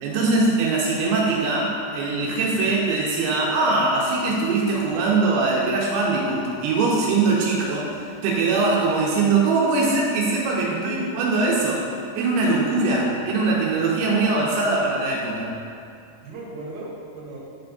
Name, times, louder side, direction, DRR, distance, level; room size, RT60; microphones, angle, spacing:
voice 1, 0.0-11.9 12.2-15.5, right 3 dB, 90° right, -4 dB, 2.9 m, -22 dB
voice 2, 10.7-11.1 16.2-17.4, right 2 dB, 65° right, -6 dB, 3.2 m, -35 dB
9.5 x 3.4 x 4.0 m, 2.7 s
omnidirectional pair, 5.1 m